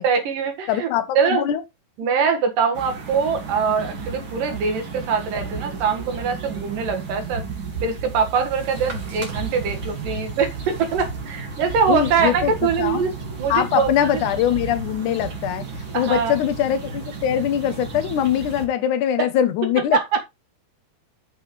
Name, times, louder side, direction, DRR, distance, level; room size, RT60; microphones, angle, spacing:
voice 1, 0.0-0.9 1.1-1.4 2.0-7.4 7.8-13.1 13.4-14.2 15.9-16.4 19.9-20.2, right 6 dB, 60° right, 3.1 m, -23 dB
voice 2, 0.7-1.6 11.9-13.1 13.5-15.7 15.9-20.0, left 10 dB, 75° left, 1.9 m, -22 dB
sound 1, 2.7-18.7, right 4 dB, 40° right, 2.1 m, -33 dB
8.6 x 8.4 x 3.2 m
omnidirectional pair, 4.8 m